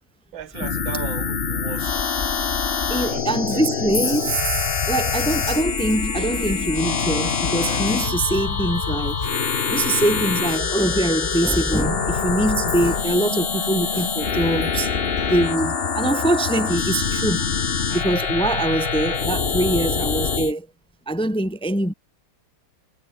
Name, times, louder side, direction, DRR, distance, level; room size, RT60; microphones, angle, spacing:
voice 1, 0.3-2.1 3.0-3.9, right 10 dB, 70° right, 1.7 m, -36 dB
sound 1, 0.5-20.5, left 6 dB, 35° left, 1.1 m, -25 dB
voice 2, 2.9-4.6 4.9-9.2 9.7-14.9 15.3-17.6 17.9-20.7 21.1-21.9, right 1 dB, 5° left, 1.1 m, -23 dB
Chink clink, 3.8-9.4 9.7-10.3 10.7-10.8 11.3-13.7 13.9-17.4, left 4 dB, 70° left, 5.6 m, -38 dB
sound 2, 4.0-20.4, right 2 dB, 35° right, 5.6 m, -38 dB
omnidirectional pair, 2.3 m